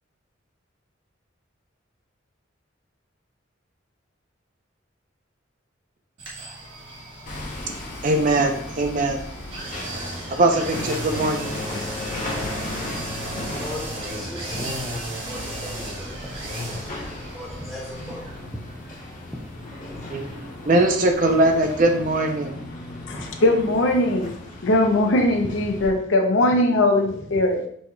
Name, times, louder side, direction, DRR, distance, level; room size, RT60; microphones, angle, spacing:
sound 1, 6.2-22.0 22.3-22.4, equal, 65° right, 1.3 m, -36 dB
Hammer, 7.3-25.9, left 1 dB, 40° left, 0.8 m, -36 dB
voice 1, 8.0-9.2 10.4-11.5 20.1-22.5, right 2 dB, 45° right, 4 dB, 0.6 m, -21 dB
voice 2, 13.1-14.8 15.1-16.3 17.3-18.3 18.9-19.0 23.2-23.3, left 1 dB, ahead, -5 dB, 0.4 m, -37 dB
voice 3, 23.1-24.3 24.6-27.6, left 1 dB, 75° left, 3 dB, 0.6 m, -20 dB
4.6 x 4.2 x 2.2 m, 0.63 s
head